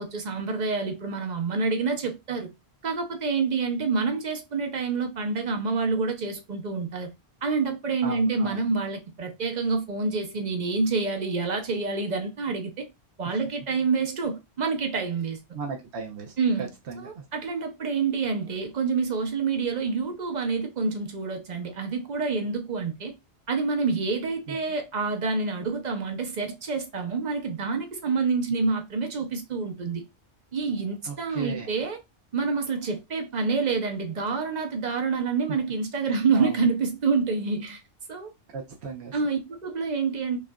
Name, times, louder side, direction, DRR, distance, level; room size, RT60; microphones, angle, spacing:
voice 1, 0.0-2.5 2.8-7.1 7.4-12.9 13.2-15.4 16.4-23.1 23.5-30.0 30.5-32.0 32.3-37.8 38.1-38.3 39.1-40.4, right 4 dB, 45° right, 0.8 m, -27 dB
voice 2, 8.0-8.6 15.5-17.2 24.5-24.6 31.1-31.7 36.3-36.6 38.5-39.2, right 4 dB, 80° right, 1.0 m, -36 dB
5.3 x 2.5 x 2.2 m
omnidirectional pair, 1.1 m